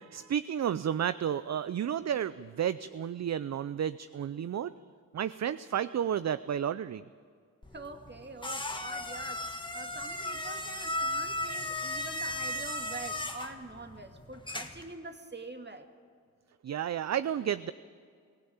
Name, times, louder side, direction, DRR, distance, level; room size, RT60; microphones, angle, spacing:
voice 1, 0.0-4.7 5.1-7.0 16.6-17.7, right 9 dB, 50° right, 15 dB, 0.5 m, -32 dB
sound 1, 7.6-14.9, left 1 dB, 15° left, 1.8 m, -36 dB
voice 2, 7.7-15.9, right 2 dB, 30° right, 6 dB, 2.2 m, -45 dB
22.5 x 16.5 x 8.8 m, 2.1 s
cardioid pair, 60°, 34 cm